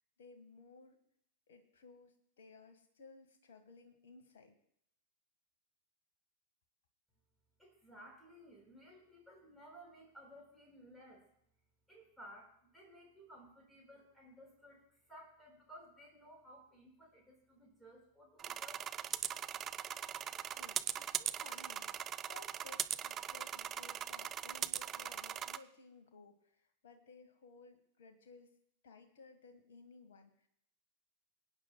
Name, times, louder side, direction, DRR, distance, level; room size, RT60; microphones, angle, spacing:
voice 1, 0.2-1.0 1.5-4.5 20.1-28.5 28.8-30.5, left 4 dB, 60° left, 6 dB, 1.5 m, -59 dB
voice 2, 7.6-11.3 11.9-18.8, equal, ahead, -3 dB, 5.2 m, -57 dB
sound 1, 18.4-25.6, right 9 dB, 25° right, 0.5 m, -40 dB
26.5 x 9.4 x 2.3 m, 0.71 s
figure-of-eight pair, 90°, 0 cm